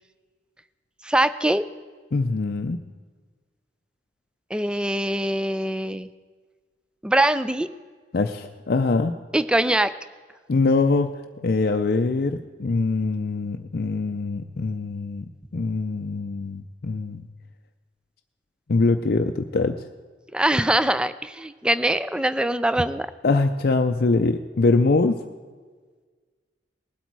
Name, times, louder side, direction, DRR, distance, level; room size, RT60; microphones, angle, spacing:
voice 1, 1.0-1.6 4.5-6.1 7.0-7.7 9.3-9.9 20.3-23.1, right 1 dB, 5° right, 14 dB, 0.3 m, -22 dB
voice 2, 2.1-2.8 8.1-9.2 10.5-11.1 11.4-15.2 15.5-17.2 18.7-19.8 23.2-25.2, left 3 dB, 55° left, 5 dB, 0.5 m, -23 dB
19.5 x 8.2 x 4.6 m, 1.5 s
head